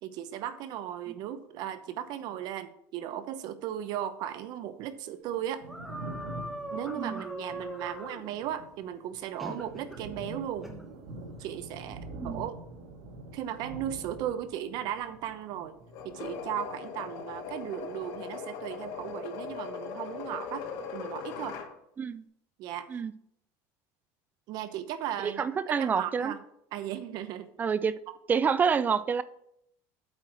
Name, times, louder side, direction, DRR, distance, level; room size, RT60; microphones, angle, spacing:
voice 1, 0.0-5.6 6.7-10.7 11.4-12.6 13.3-15.8 16.0-20.7 20.9-21.6 22.6-23.0 24.5-26.4 26.7-27.5, right 10 dB, 55° right, 11 dB, 0.8 m, -36 dB
Thunder, 5.4-19.8 20.1-21.3, right 2 dB, 85° right, 1.8 m, -46 dB
sound 1, 5.6-8.2 9.4-10.0 10.6-10.8, equal, ahead, 1.2 m, -40 dB
sound 2, 15.9-21.7, left 6 dB, 60° left, 1.4 m, -39 dB
voice 2, 25.2-26.3 27.6-28.0 28.3-29.2, right 6 dB, 20° right, 16 dB, 0.4 m, -27 dB
8.5 x 4.8 x 6.1 m, 0.74 s
cardioid pair, 145°, 8 cm